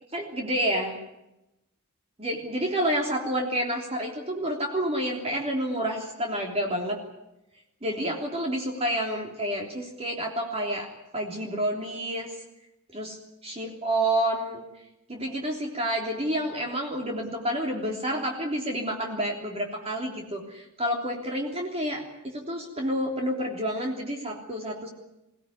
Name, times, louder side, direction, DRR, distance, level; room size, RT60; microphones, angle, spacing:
voice 1, 0.1-1.0 2.2-7.0 7.8-12.3 12.9-13.2 13.4-14.6 15.1-24.9, right 1 dB, 30° right, 1 dB, 3.4 m, -29 dB
23.5 x 17.5 x 9.7 m, 0.92 s
head